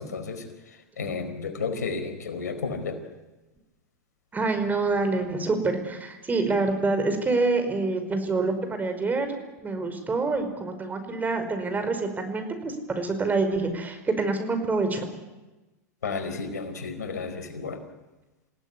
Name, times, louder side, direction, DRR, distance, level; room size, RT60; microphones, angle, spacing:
voice 1, 0.0-3.0 16.0-17.8, left 4 dB, 80° left, 8 dB, 4.5 m, -32 dB
voice 2, 4.3-9.4 9.6-15.1, right 3 dB, 20° right, 7 dB, 5.2 m, -26 dB
28.0 x 17.0 x 9.9 m, 1.1 s
hypercardioid pair, 100°, 9 cm